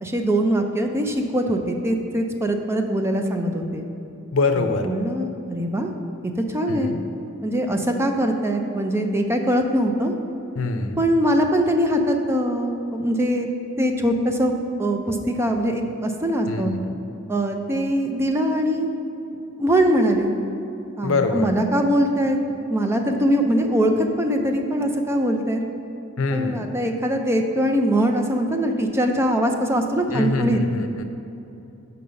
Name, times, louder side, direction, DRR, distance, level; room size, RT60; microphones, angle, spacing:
voice 1, 0.0-3.8 4.6-5.9 6.5-6.9 7.4-10.1 10.9-13.5 13.8-14.5 14.8-16.7 17.3-18.9 19.3-20.4 21.0-22.4 22.7-25.6 26.3-30.6, equal, 15° right, 4 dB, 0.5 m, -22 dB
voice 2, 4.3-4.9 6.7-7.0 10.6-11.0 16.5-17.0 21.0-21.5 26.2-26.6 30.1-31.0, left 3 dB, 80° left, 7 dB, 0.6 m, -24 dB
5.8 x 5.4 x 6.4 m, 2.9 s
head